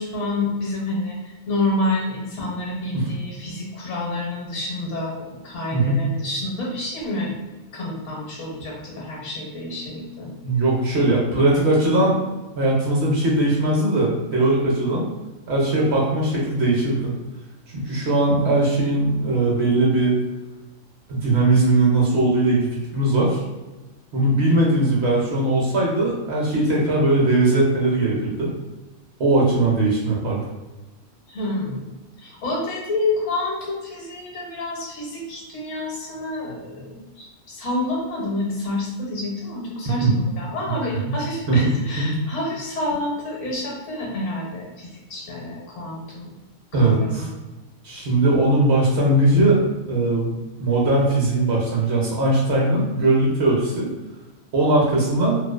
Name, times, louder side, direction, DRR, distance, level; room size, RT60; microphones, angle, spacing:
voice 1, 0.0-7.4 7.7-10.3 31.3-31.9 32.2-40.1 40.4-46.4 46.8-47.3, left 2 dB, 70° left, -2 dB, 1.0 m, -28 dB
voice 2, 5.7-6.0 10.4-12.2 12.6-15.1 15.5-17.1 17.7-20.2 21.1-23.4 24.1-28.5 29.2-30.4 39.9-40.1 40.7-40.8 41.5-42.2 46.7-47.3 47.8-49.6 49.9-50.3 50.6-53.9 54.5-55.4, right 2 dB, 60° right, -3 dB, 0.8 m, -19 dB
2.5 x 2.3 x 2.3 m, 1.1 s
omnidirectional pair, 1.4 m